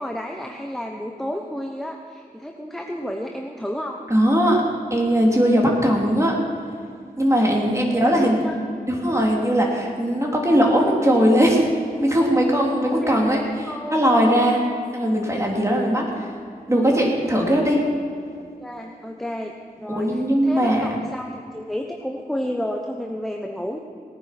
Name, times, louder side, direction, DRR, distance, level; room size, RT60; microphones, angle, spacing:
voice 1, 0.0-4.0 7.6-8.6 13.0-14.5 18.6-23.8, equal, ahead, 2 dB, 1.0 m, -32 dB
voice 2, 4.1-4.6 4.9-6.4 7.2-11.6 12.0-14.6 14.9-16.3 16.7-17.8 19.9-20.9, equal, 20° right, -1 dB, 3.1 m, -19 dB
18.5 x 9.5 x 6.0 m, 2.4 s
wide cardioid pair, 65°, 16 cm